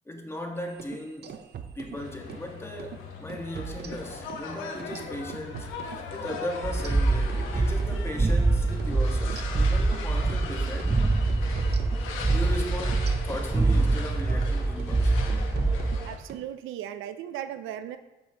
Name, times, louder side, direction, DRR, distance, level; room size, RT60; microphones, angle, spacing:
voice 1, 0.0-1.4 1.7-11.0 12.3-15.5, left 1 dB, 15° left, 1 dB, 1.5 m, -37 dB
sound 1, 0.7-2.5 2.8-3.0 3.3-4.5 4.8-8.5 8.8-9.0 9.3-10.5 10.8-11.0 11.3-14.5 14.8-15.0 15.3-16.5, right 7 dB, 55° right, 0.7 m, -42 dB
sound 2, 1.9-16.2, left 5 dB, 85° left, 1.1 m, -40 dB
sound 3, 6.6-16.1, right 3 dB, 15° right, 0.4 m, -25 dB
voice 2, 16.0-18.0, right 11 dB, 90° right, 10 dB, 0.5 m, -37 dB
14.0 x 5.6 x 3.0 m, 1.1 s
cardioid pair, 90°, 20 cm